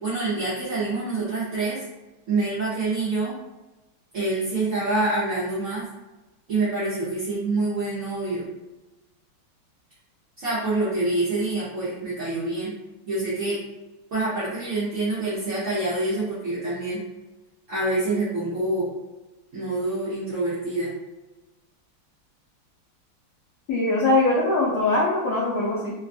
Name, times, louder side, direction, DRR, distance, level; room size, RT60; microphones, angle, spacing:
voice 1, 0.0-1.8 2.3-3.4 4.1-5.8 6.5-8.5 10.4-12.8 13.1-13.6 14.1-17.0 17.7-18.9 19.5-20.9, right 2 dB, 60° right, -10 dB, 0.8 m, -26 dB
voice 2, 23.7-25.9, left 2 dB, 85° left, -5 dB, 0.8 m, -22 dB
3.3 x 2.2 x 2.5 m, 1.0 s
omnidirectional pair, 2.3 m